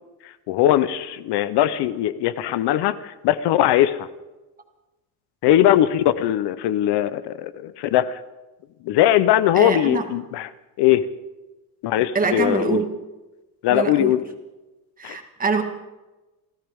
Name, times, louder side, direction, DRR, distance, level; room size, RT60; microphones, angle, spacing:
voice 1, 0.5-4.1 5.4-8.2 8.8-10.5 10.8-11.0 11.8-12.8 13.6-14.2 15.0-15.2, left 12 dB, 75° left, 14 dB, 0.8 m, -20 dB
voice 2, 9.5-10.1 12.1-12.8 13.7-14.1 15.0-15.6, right 4 dB, 20° right, 5 dB, 1.6 m, -24 dB
29.5 x 13.5 x 3.6 m, 1.1 s
cardioid pair, 155°, 41 cm